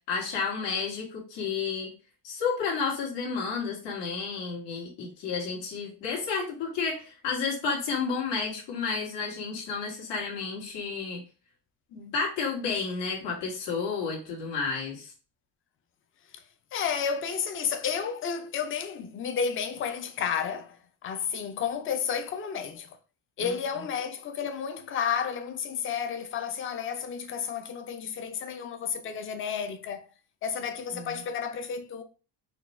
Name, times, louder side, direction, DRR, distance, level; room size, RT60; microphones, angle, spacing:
voice 1, 0.1-1.9 2.2-11.2 11.9-15.1 23.4-23.5 30.9-31.2, left 5 dB, 75° left, 1.8 m, -31 dB
voice 2, 16.7-20.8 21.0-22.9 23.4-30.0 30.4-32.0, left 7 dB, 30° left, 0.4 m, -31 dB
4.4 x 2.3 x 4.1 m
cardioid pair, 170°, 43 cm